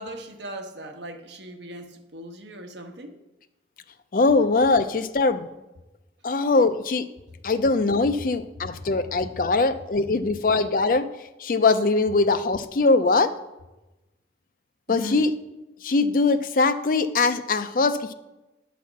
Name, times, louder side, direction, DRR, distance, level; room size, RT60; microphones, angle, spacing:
voice 1, 0.0-3.2 8.6-8.7 14.9-15.3, equal, 75° right, 5 dB, 1.0 m, -38 dB
voice 2, 4.1-5.5 6.2-7.1 7.4-11.0 11.4-13.3 14.9-15.3 15.8-18.1, left 3 dB, 50° left, 11 dB, 0.4 m, -21 dB
9.4 x 4.2 x 7.2 m, 1.0 s
head